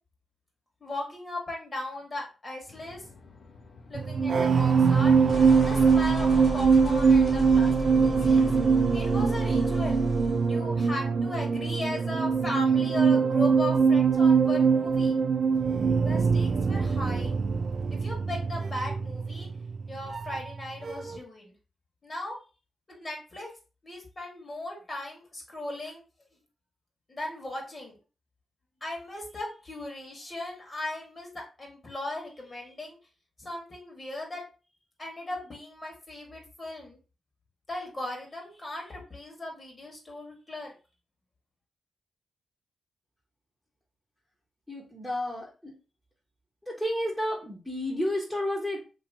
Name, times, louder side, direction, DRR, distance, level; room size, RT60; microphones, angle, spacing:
voice 1, 0.8-3.0 3.9-5.1 5.6-7.7 8.0-8.5 8.9-10.0 10.5-15.2 16.0-17.3 17.9-19.5 19.9-21.5 22.0-22.4 22.9-23.5 23.8-26.0 27.1-28.0 28.8-33.0 33.4-34.4 35.0-37.0 37.7-40.7, left 1 dB, 40° left, 0 dB, 1.8 m, -37 dB
sound 1, 2.7-10.5, left 2 dB, 60° left, 0.6 m, -36 dB
sound 2, 3.9-20.6 20.9-21.2, right 5 dB, 60° right, 0.4 m, -23 dB
voice 2, 44.7-45.7 46.6-48.9, left 1 dB, 10° left, -5 dB, 1.2 m, -31 dB
3.0 x 2.8 x 2.7 m, 0.33 s
supercardioid pair, 45°, 0 cm